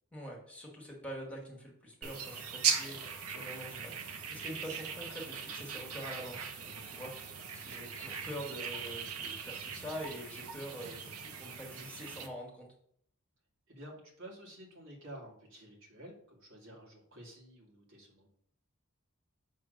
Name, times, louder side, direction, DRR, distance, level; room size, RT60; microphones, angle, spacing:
voice 1, 0.1-12.7, equal, 5° left, -2 dB, 1.7 m, -45 dB
sound 1, 2.0-12.3, right 6 dB, 85° right, 0.9 m, -39 dB
voice 2, 13.7-18.3, right 1 dB, 65° right, -2 dB, 2.2 m, -51 dB
7.2 x 3.3 x 6.3 m, 0.66 s
head